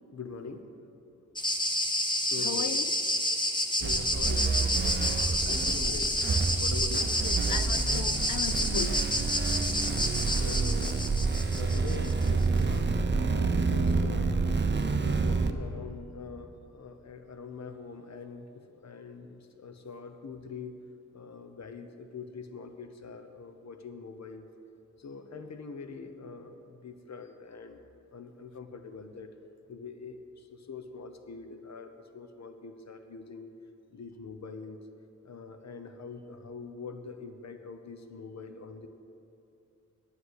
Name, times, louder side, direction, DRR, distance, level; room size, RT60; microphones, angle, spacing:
voice 1, 0.1-0.7 2.2-2.8 3.8-4.6 5.2-6.2 6.6-7.2 10.3-14.4 14.8-20.8 21.1-24.5 25.0-27.8 28.1-29.3 29.7-33.5 33.9-34.8 35.2-38.9, left 4 dB, 60° left, 0.9 m, -44 dB
sound 1, 1.4-12.3, left 1 dB, 15° left, 1.0 m, -29 dB
voice 2, 2.4-2.9 5.5-5.6 7.2-9.1, left 10 dB, 75° left, 0.5 m, -37 dB
sound 2, 3.8-15.5, right 4 dB, 35° right, 0.6 m, -28 dB
9.9 x 7.8 x 8.1 m
wide cardioid pair, 85°, 31 cm